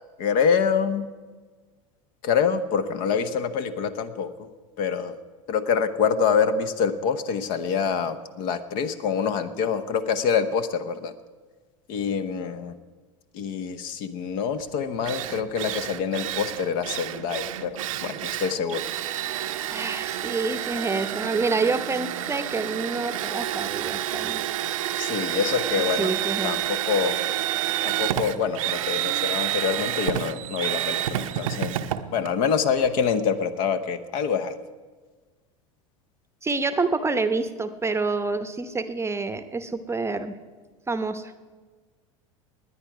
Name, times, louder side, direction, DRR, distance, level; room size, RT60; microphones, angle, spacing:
voice 1, 0.2-1.1 2.2-4.5 4.8-5.2 5.5-11.1 11.9-12.7 13.3-18.8 25.0-26.1 26.4-27.2 27.8-31.8 32.1-34.6, left 6 dB, 55° left, 11 dB, 0.9 m, -26 dB
Drill, 14.6-14.7 15.0-33.2, right 12 dB, 75° right, 0.7 m, -29 dB
voice 2, 19.7-24.4 26.0-26.6 36.4-40.4 40.9-41.3, right 3 dB, 15° right, 10 dB, 0.8 m, -27 dB
20.0 x 9.5 x 4.8 m, 1.4 s
hypercardioid pair, 80°, 18 cm